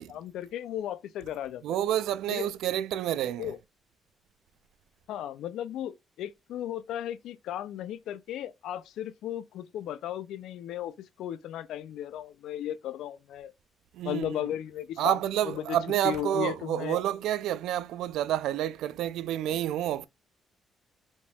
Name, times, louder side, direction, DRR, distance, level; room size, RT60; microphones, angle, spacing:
voice 1, 0.0-1.6 2.3-2.5 3.4-3.6 5.1-13.5 14.0-15.2 15.4-15.8 16.0-17.0, left 11 dB, 85° left, 0.4 m, -35 dB
voice 2, 1.6-3.5 13.9-14.4 15.0-20.1, right 12 dB, 85° right, 0.3 m, -29 dB
5.1 x 3.4 x 2.3 m
cardioid pair, 90°, 0 cm